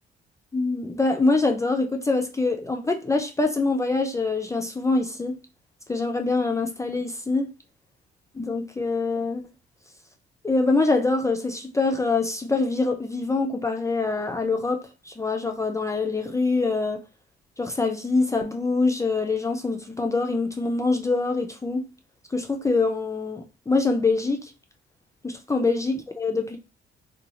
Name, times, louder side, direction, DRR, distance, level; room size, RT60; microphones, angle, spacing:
voice 1, 0.5-5.3 5.9-7.5 8.3-9.4 10.4-17.0 17.6-21.8 22.3-24.5 25.2-26.6, left 3 dB, 15° left, 0.4 m, -24 dB
2.7 x 2.3 x 2.9 m
cardioid pair, 90°, 20 cm